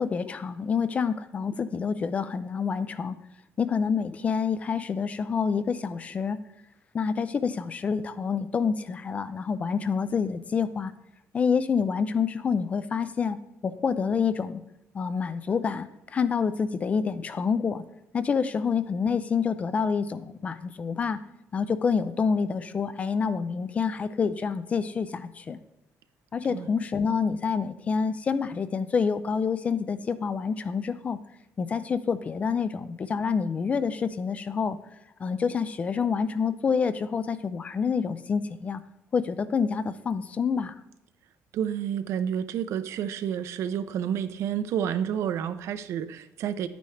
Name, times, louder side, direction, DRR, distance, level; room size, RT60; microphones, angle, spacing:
voice 1, 0.0-3.2 3.6-6.4 6.9-10.9 11.3-13.4 13.6-14.6 14.9-17.8 18.1-21.2 21.5-25.6 26.3-31.2 31.6-34.8 35.2-38.8 39.1-40.7, left 6 dB, 25° left, 13 dB, 0.3 m, -27 dB
voice 2, 41.5-46.7, right 9 dB, 60° right, 12 dB, 0.6 m, -30 dB
10.0 x 9.1 x 3.2 m, 0.89 s
cardioid pair, 180°, 6 cm